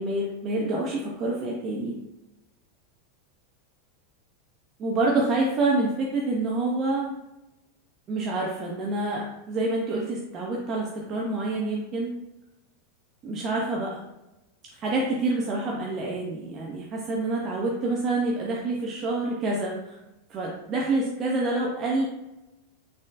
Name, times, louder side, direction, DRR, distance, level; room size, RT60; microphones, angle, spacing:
voice 1, 0.0-1.9 4.8-7.1 8.1-12.1 13.2-14.0 14.7-20.0 20.3-22.1, right 2 dB, 25° right, -2 dB, 0.5 m, -27 dB
4.2 x 3.8 x 2.5 m, 0.96 s
supercardioid pair, 165°, 0 cm